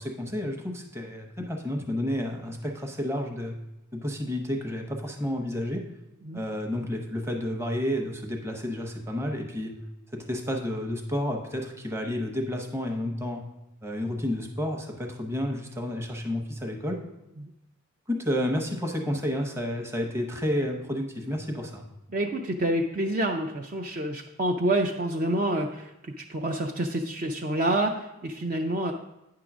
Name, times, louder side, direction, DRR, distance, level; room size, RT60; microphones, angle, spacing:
voice 1, 0.0-3.5 3.9-5.8 6.3-9.7 10.1-13.4 13.8-17.0 18.1-21.8, left 1 dB, 10° right, 2 dB, 0.8 m, -30 dB
voice 2, 22.1-28.9, right 1 dB, 40° right, 2 dB, 0.5 m, -28 dB
9.2 x 3.8 x 6.0 m, 0.92 s
head